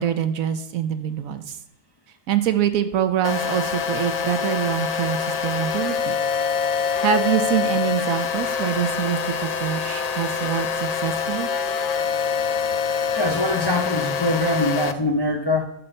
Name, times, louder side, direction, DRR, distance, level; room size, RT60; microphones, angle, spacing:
voice 1, 0.0-1.6 2.3-6.2 7.0-11.5, right 9 dB, 80° right, 10 dB, 1.2 m, -25 dB
sound 1, 3.2-14.9, left 6 dB, 85° left, 0.3 m, -25 dB
voice 2, 13.1-15.7, left 1 dB, 25° left, 3 dB, 0.6 m, -23 dB
11.0 x 4.5 x 6.6 m, 0.76 s
omnidirectional pair, 1.4 m